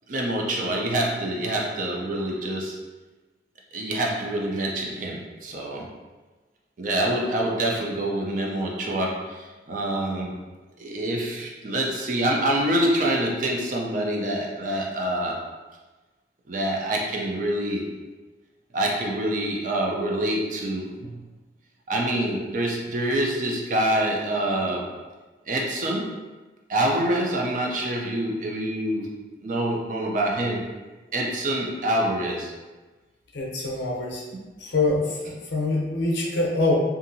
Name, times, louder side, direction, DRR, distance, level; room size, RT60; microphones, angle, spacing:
voice 1, 0.1-2.8 3.7-5.9 6.8-10.4 10.8-15.4 16.5-17.9 18.7-21.1 21.9-24.9 25.5-26.1 26.7-29.1 29.4-30.7 31.1-32.5, right 1 dB, 45° right, -1 dB, 0.4 m, -26 dB
voice 2, 33.3-34.2 34.6-36.7, left 2 dB, 75° left, -2 dB, 0.6 m, -25 dB
2.7 x 2.5 x 2.6 m, 1.2 s
head